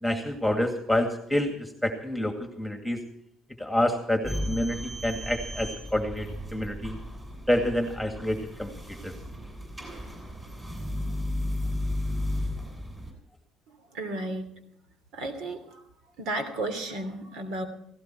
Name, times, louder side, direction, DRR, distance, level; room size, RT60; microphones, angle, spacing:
voice 1, 0.0-3.0 3.6-7.0 7.5-9.1, left 1 dB, ahead, 5 dB, 2.2 m, -28 dB
sound 1, 4.2-13.1, left 1 dB, 20° right, 6.8 m, -34 dB
voice 2, 13.9-14.5 15.1-15.8 16.2-17.6, right 2 dB, 80° right, 9 dB, 2.9 m, -33 dB
17.0 x 17.0 x 4.5 m, 0.75 s
cardioid pair, 105°, 0 cm